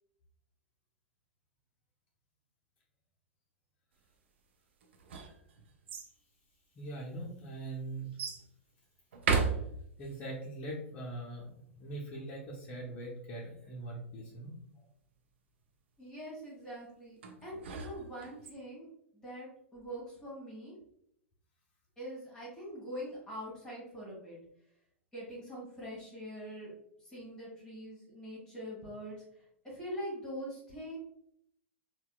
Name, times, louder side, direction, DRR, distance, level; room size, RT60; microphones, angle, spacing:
sound 1, 4.8-6.1 6.9-7.0 8.2-8.5 9.1-10.2 17.2-18.5, right 5 dB, 60° right, 0.5 m, -35 dB
voice 1, 6.8-8.2 10.0-11.5 11.8-14.5, right 2 dB, 25° left, -5 dB, 0.6 m, -41 dB
voice 2, 16.0-20.7 22.0-24.4 25.1-26.7 27.0-31.0, equal, 10° left, -7 dB, 1.4 m, -44 dB
4.2 x 2.2 x 2.3 m, 0.71 s
figure-of-eight pair, 100°, 7 cm